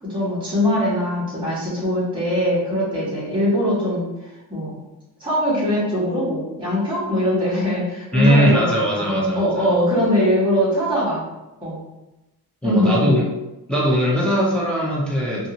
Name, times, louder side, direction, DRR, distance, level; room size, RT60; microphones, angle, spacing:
voice 1, 0.0-4.8 5.2-11.2 11.6-11.8 12.6-13.1, equal, 10° right, -9 dB, 1.0 m, -22 dB
voice 2, 8.1-9.7 12.6-13.2 13.7-15.5, equal, 5° left, -4 dB, 0.4 m, -20 dB
2.6 x 2.4 x 2.8 m, 1.0 s
wide cardioid pair, 160°, 40 cm